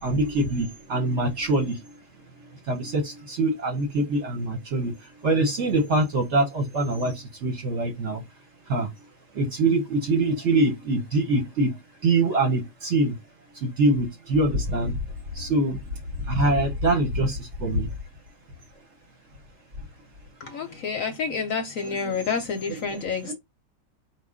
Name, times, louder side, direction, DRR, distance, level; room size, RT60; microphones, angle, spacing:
voice 1, 0.0-1.9 2.7-8.2 8.7-8.9 9.3-11.8 12.0-13.2 13.5-15.0 15.3-17.9 21.8-22.1 22.7-22.8 23.2-23.3, right 2 dB, 50° right, 1.0 m, -24 dB
voice 2, 20.4-23.3, left 5 dB, 65° left, 0.9 m, -29 dB
4.6 x 2.5 x 3.6 m
omnidirectional pair, 1.8 m